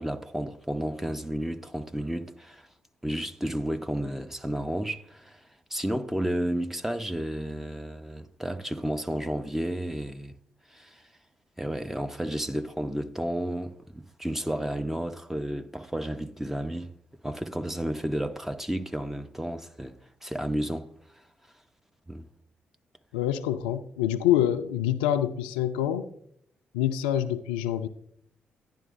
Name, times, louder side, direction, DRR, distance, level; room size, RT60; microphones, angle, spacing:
voice 1, 0.0-2.7 3.0-5.4 5.7-10.3 10.7-11.0 11.6-16.9 17.2-20.9 22.1-22.3, right 1 dB, 5° right, 0.8 m, -32 dB
voice 2, 23.1-26.1 26.7-27.9, left 11 dB, 85° left, 0.4 m, -26 dB
11.0 x 10.5 x 2.6 m
hypercardioid pair, 40°, 5 cm